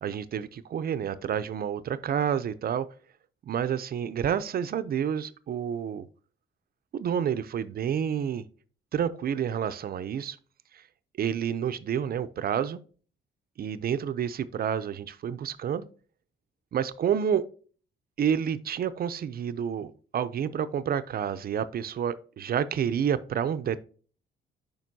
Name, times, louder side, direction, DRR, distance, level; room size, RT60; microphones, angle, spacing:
voice 1, 0.0-2.9 3.5-6.1 6.9-8.4 8.9-10.4 10.7-10.8 11.2-12.8 13.6-15.9 16.7-17.4 18.2-23.8, right 8 dB, 50° right, 0.4 m, -29 dB
7.4 x 5.1 x 2.6 m
cardioid pair, 90°, 20 cm